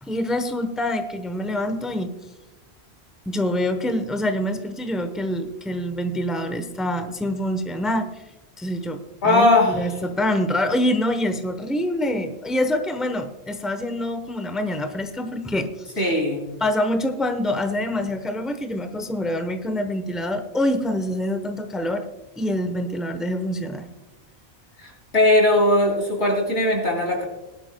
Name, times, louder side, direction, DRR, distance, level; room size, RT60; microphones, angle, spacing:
voice 1, 0.0-2.1 3.3-8.1 8.6-15.7 16.0-16.1 16.6-22.0 22.4-23.9, left 1 dB, ahead, 8 dB, 0.9 m, -25 dB
voice 2, 9.2-9.8 16.0-16.4 24.8-27.3, left 1 dB, 85° left, 0 dB, 3.8 m, -19 dB
19.0 x 12.0 x 2.3 m, 0.98 s
omnidirectional pair, 1.1 m